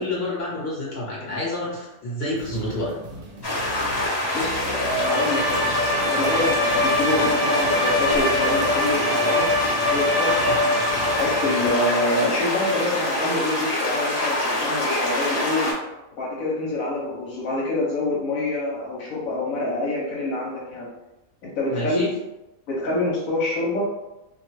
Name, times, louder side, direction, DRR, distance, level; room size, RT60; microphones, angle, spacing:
voice 1, 0.0-2.9 10.2-10.6 21.7-22.1, left 1 dB, 50° left, -6 dB, 1.0 m, -29 dB
sound 1, 2.3-11.7, right 1 dB, 55° right, 0.7 m, -39 dB
sound 2, 3.4-15.7, left 1 dB, 25° left, 0.6 m, -25 dB
voice 2, 4.3-5.7 6.1-9.5 9.9-10.4 11.1-15.8 16.2-20.9 21.4-22.0 22.7-23.8, left 2 dB, 75° left, -5 dB, 1.1 m, -26 dB
Bowed string instrument, 4.8-11.9, left 2 dB, ahead, 0.8 m, -24 dB
2.5 x 2.2 x 3.0 m, 0.97 s
omnidirectional pair, 1.5 m